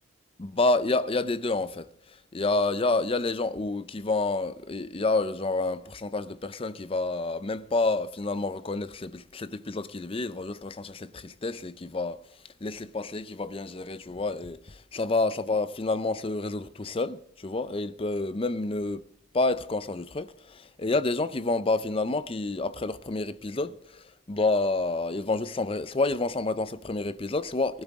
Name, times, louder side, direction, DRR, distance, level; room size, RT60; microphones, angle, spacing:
voice 1, 0.4-12.2 12.6-19.1 19.3-27.8, left 3 dB, 30° left, 0.5 m, -29 dB
18.5 x 12.0 x 3.6 m
head